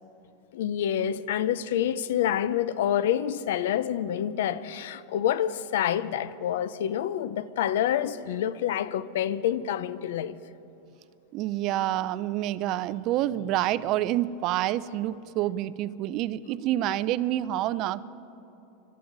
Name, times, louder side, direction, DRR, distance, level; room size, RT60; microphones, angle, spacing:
voice 1, 0.5-10.4, left 10 dB, 80° left, 0.6 m, -27 dB
voice 2, 11.3-18.0, right 13 dB, 45° right, 0.5 m, -28 dB
25.5 x 13.0 x 4.0 m
supercardioid pair, 135°, 0 cm